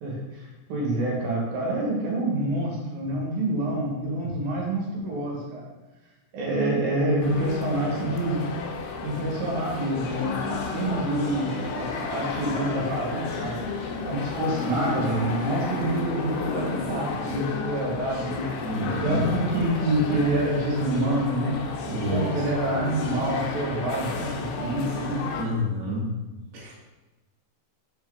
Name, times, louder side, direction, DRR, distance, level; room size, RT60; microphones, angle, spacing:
voice 1, 0.0-5.7 6.3-8.4 9.0-13.6 14.0-18.4 18.8-21.6 21.9-25.2, right 1 dB, 65° right, -3 dB, 2.8 m, -27 dB
sound 1, 7.2-25.4, left 4 dB, 85° left, 2.9 m, -32 dB
voice 2, 18.6-19.2 21.9-22.3 25.4-26.1 26.5-26.7, equal, 85° right, -5 dB, 1.2 m, -29 dB
6.5 x 4.5 x 3.5 m, 1.1 s
omnidirectional pair, 5.1 m